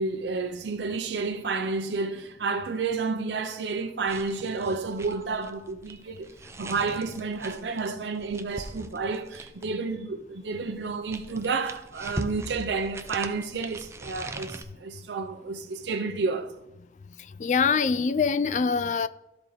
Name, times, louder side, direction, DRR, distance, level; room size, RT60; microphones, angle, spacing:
voice 1, 0.0-6.3 6.6-16.6, right 4 dB, 85° right, 0.5 m, -30 dB
sound 1, 4.0-9.8 10.7-14.6, right 2 dB, 15° right, 0.5 m, -40 dB
voice 2, 17.4-19.1, left 5 dB, 45° left, 0.3 m, -24 dB
13.0 x 4.4 x 4.0 m
head